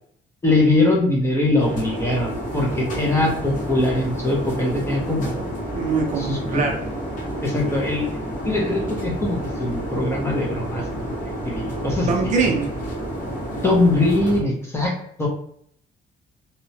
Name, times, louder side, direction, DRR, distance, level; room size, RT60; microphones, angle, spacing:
voice 1, 0.4-5.5 6.2-6.7 7.4-8.1 8.4-10.9 11.2-12.3 13.6-15.3, left 2 dB, 15° left, -2 dB, 0.5 m, -22 dB
sound 1, 1.6-14.4, equal, 50° left, 0.9 m, -30 dB
voice 2, 5.7-6.8 12.1-12.7, right 4 dB, 45° right, 2 dB, 0.5 m, -23 dB
2.8 x 2.1 x 2.6 m, 0.65 s
cardioid pair, 170°, 18 cm